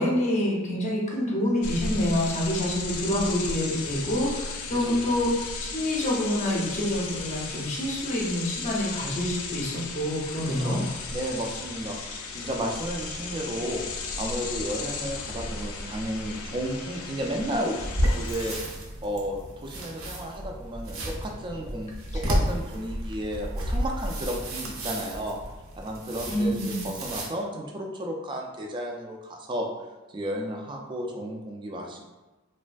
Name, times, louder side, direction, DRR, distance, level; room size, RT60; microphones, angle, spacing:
voice 1, 0.0-5.3 5.6-10.8 26.3-26.8, left 1 dB, 35° left, -3 dB, 0.6 m, -27 dB
sound 1, 1.6-18.6, left 4 dB, 75° left, 0.4 m, -35 dB
voice 2, 4.8-5.2 10.5-10.8 11.1-13.8 14.2-17.8 18.1-18.8 19.0-25.4 25.8-29.7 30.1-32.0, equal, 20° right, 0 dB, 0.3 m, -33 dB
sound 2, 17.8-27.3, equal, 70° right, 0.6 m, -31 dB
3.0 x 2.2 x 2.5 m, 1.1 s
head